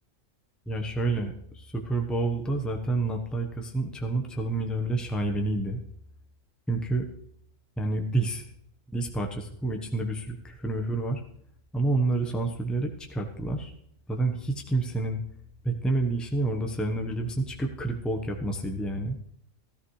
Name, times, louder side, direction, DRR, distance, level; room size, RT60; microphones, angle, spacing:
voice 1, 0.7-5.8 6.7-7.1 7.8-8.4 8.9-11.2 11.7-13.7 14.1-15.2 15.6-19.2, right 2 dB, ahead, 3 dB, 0.9 m, -29 dB
14.5 x 13.0 x 3.2 m, 0.68 s
omnidirectional pair, 1.3 m